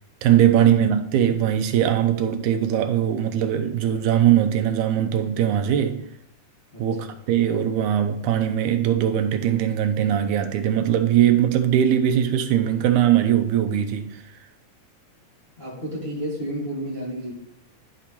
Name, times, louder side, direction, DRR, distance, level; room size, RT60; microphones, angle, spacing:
voice 1, 0.2-6.0 6.8-14.2, right 10 dB, 80° right, 1.9 m, -20 dB
voice 2, 6.7-7.1 15.6-17.3, equal, 25° left, 1.7 m, -31 dB
11.5 x 5.0 x 2.9 m
omnidirectional pair, 3.7 m